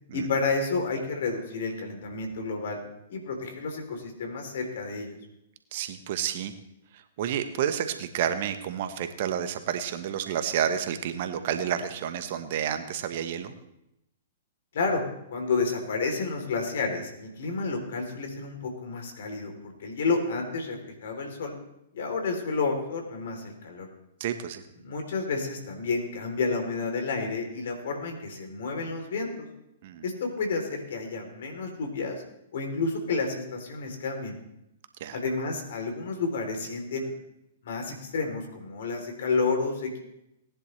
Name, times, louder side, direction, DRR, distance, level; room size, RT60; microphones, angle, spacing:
voice 1, 0.1-2.8 3.1-5.2 14.7-15.0 15.3-21.5 21.9-23.9 24.8-29.5 30.0-32.2 32.5-34.3 35.1-37.1 37.6-40.0, left 4 dB, 60° left, 4 dB, 3.2 m, -30 dB
voice 2, 5.7-6.5 6.9-13.5 24.2-24.6 29.8-30.0 35.0-35.2, right 9 dB, 50° right, 9 dB, 1.1 m, -30 dB
18.5 x 10.5 x 3.3 m, 0.84 s
figure-of-eight pair, 115°, 0 cm